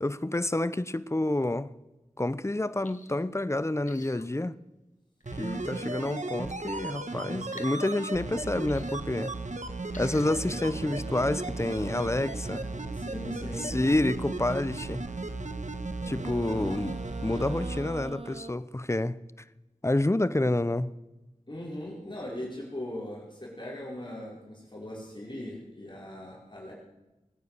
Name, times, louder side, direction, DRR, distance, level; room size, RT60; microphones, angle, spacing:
voice 1, 0.0-1.7 2.2-4.5 5.4-9.3 10.0-12.7 13.6-15.0 16.0-19.1 19.8-20.9, left 1 dB, 20° left, 0.7 m, -28 dB
sound 1, 2.8-3.2 3.9-4.3 5.2-5.6 7.5-7.9 8.7-9.0 9.9-10.3 10.9-11.0, left 3 dB, 75° left, 1.3 m, -48 dB
sound 2, 5.2-17.8 18.1-18.2, right 2 dB, 70° right, 1.4 m, -35 dB
sound 3, 9.9-14.8 16.0-18.5, right 3 dB, 45° right, 0.7 m, -44 dB
voice 2, 12.9-13.8 21.5-26.7, left 1 dB, 35° left, 4.7 m, -39 dB
20.5 x 9.2 x 6.8 m
wide cardioid pair, 45°, 13 cm